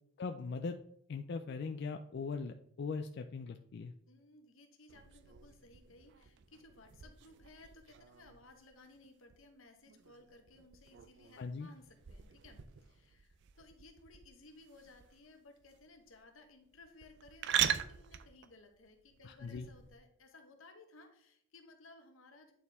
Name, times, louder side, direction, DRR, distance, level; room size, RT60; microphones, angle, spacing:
voice 1, 0.2-0.8 1.1-3.9 11.4-11.7 19.2-19.7, left 4 dB, 55° left, 6 dB, 0.4 m, -40 dB
voice 2, 4.1-22.5, left 2 dB, 90° left, 5 dB, 1.1 m, -59 dB
sound 1, 4.9-20.0, right 10 dB, 60° right, 0.4 m, -42 dB
9.0 x 4.3 x 3.5 m, 0.68 s
head